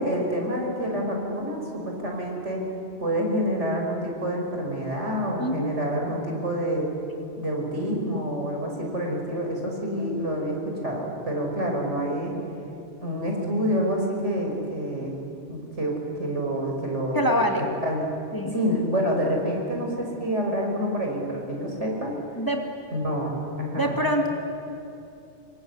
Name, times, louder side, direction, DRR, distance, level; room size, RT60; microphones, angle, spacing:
voice 1, 0.0-2.6 3.0-6.9 7.4-12.3 13.0-15.1 15.5-17.3 17.6-18.0 18.5-22.1 22.9-23.9, equal, 90° right, 0 dB, 5.9 m, -27 dB
voice 2, 5.4-5.8 17.1-17.7 18.3-18.5 22.4-22.6 23.8-24.3, equal, 15° left, 2 dB, 2.6 m, -24 dB
26.5 x 22.5 x 9.7 m, 2.7 s
omnidirectional pair, 1.2 m